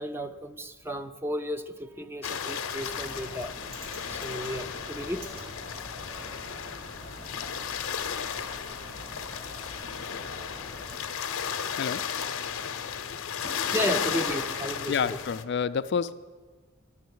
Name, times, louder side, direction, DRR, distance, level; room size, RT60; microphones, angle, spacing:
voice 1, 0.0-3.6 4.0-5.5 13.4-15.2, equal, 10° right, 9 dB, 0.5 m, -34 dB
sound 1, 2.2-15.4, left 7 dB, 85° left, 0.7 m, -34 dB
Bird, 2.7-11.0, equal, 90° right, 3.3 m, -45 dB
voice 2, 14.9-16.1, left 6 dB, 55° left, 13 dB, 0.4 m, -28 dB
13.0 x 6.5 x 9.4 m, 1.4 s
head